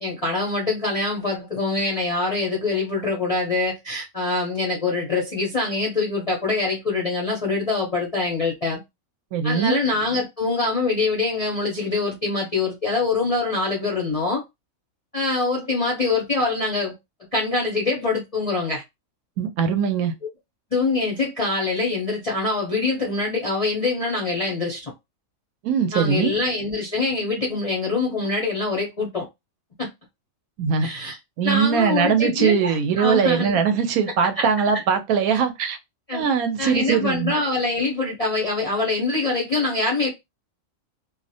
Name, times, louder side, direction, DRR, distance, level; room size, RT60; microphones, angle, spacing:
voice 1, 0.0-8.8 9.4-14.4 15.1-16.9 17.3-18.8 20.7-24.9 25.9-29.3 29.8-29.9 30.8-31.2 31.4-33.6 34.2-34.8 36.1-36.3 36.6-40.1, left 3 dB, 45° left, 0.5 m, -24 dB
voice 2, 9.3-9.8 19.4-20.1 25.6-26.3 30.6-30.9 31.4-35.8 36.1-37.3, right 7 dB, 80° right, 1.0 m, -21 dB
2.5 x 2.1 x 2.6 m
omnidirectional pair, 1.5 m